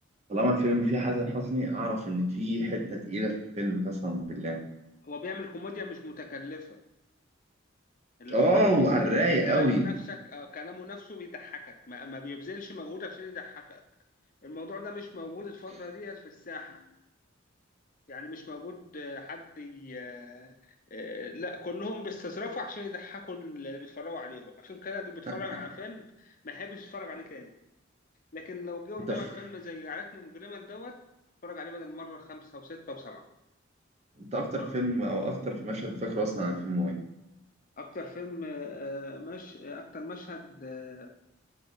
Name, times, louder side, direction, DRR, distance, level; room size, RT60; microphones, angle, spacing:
voice 1, 0.3-4.6 8.3-9.9 29.1-29.2 34.2-36.9, equal, 35° right, 1 dB, 1.0 m, -27 dB
voice 2, 5.0-6.8 8.2-13.8 14.4-16.8 18.1-27.5 28.3-31.0 31.4-33.2 34.5-34.7 37.8-41.1, left 3 dB, 40° left, 5 dB, 0.7 m, -40 dB
7.3 x 4.7 x 4.0 m, 0.88 s
head